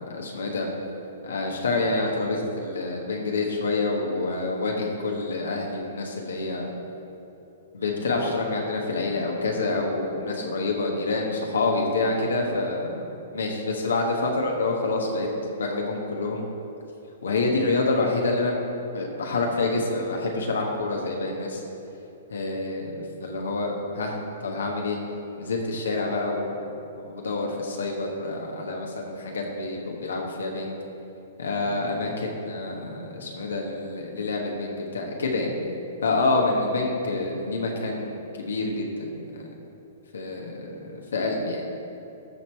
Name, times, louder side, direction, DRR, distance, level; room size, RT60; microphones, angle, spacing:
voice 1, 0.1-0.7 1.2-6.7 7.7-13.0 13.3-15.3 15.6-16.4 17.2-18.6 18.9-21.6 22.3-25.0 25.4-26.5 27.0-30.8 31.4-35.5 36.0-39.5 40.1-41.6, left 3 dB, 70° left, 0 dB, 1.3 m, -27 dB
13.5 x 4.5 x 4.4 m, 2.9 s
figure-of-eight pair, 115°, 0 cm